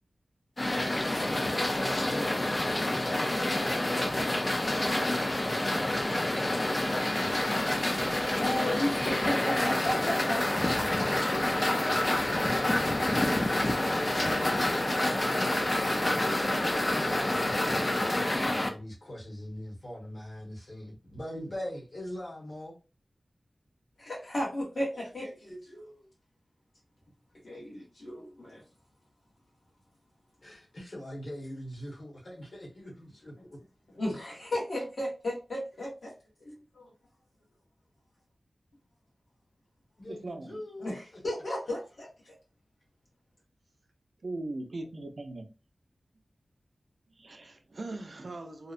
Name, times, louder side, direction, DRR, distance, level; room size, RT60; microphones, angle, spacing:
sound 1, 0.6-18.7, left 1 dB, 30° left, 0.4 m, -28 dB
voice 1, 1.6-3.1 4.6-6.6 16.1-16.3 16.9-17.8 18.3-22.7 30.4-33.6 40.0-41.2, equal, 55° left, 1.2 m, -42 dB
voice 2, 7.9-11.9 24.0-26.0 27.4-28.6 33.9-35.9 36.7-36.9 40.8-42.3, left 1 dB, 80° left, 1.0 m, -35 dB
voice 3, 40.1-40.6 44.2-45.5 47.1-48.7, right 2 dB, 60° right, 0.5 m, -39 dB
2.7 x 2.0 x 2.4 m
wide cardioid pair, 85°, 0 cm